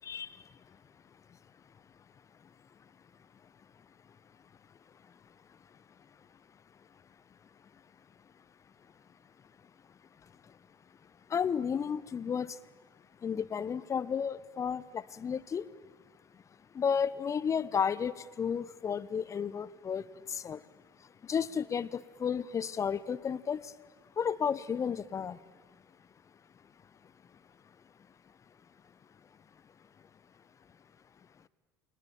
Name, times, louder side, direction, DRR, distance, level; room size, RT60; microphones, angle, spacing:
voice 1, 0.0-0.8 10.2-10.6 11.3-12.6 13.2-15.7 16.3-16.4 16.7-20.6 21.0-23.7 24.2-25.4, left 7 dB, 25° left, 18 dB, 1.0 m, -33 dB
29.0 x 23.0 x 8.9 m, 1.4 s
figure-of-eight pair, 70°, 12 cm